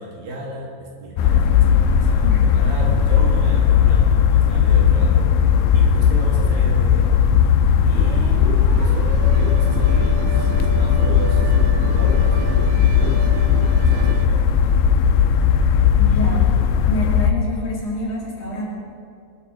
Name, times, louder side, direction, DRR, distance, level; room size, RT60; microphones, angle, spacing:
voice 1, 0.0-7.3 7.8-11.6 11.8-14.8, right 1 dB, 60° right, -2 dB, 3.2 m, -35 dB
sound 1, 1.2-17.3, left 7 dB, 90° left, 2.9 m, -16 dB
sound 2, 7.9-14.3, right 5 dB, 85° right, 2.9 m, -32 dB
voice 2, 16.0-16.5 16.8-18.6, equal, 50° left, -4 dB, 3.0 m, -27 dB
22.0 x 8.3 x 5.5 m, 2.3 s
omnidirectional pair, 5.1 m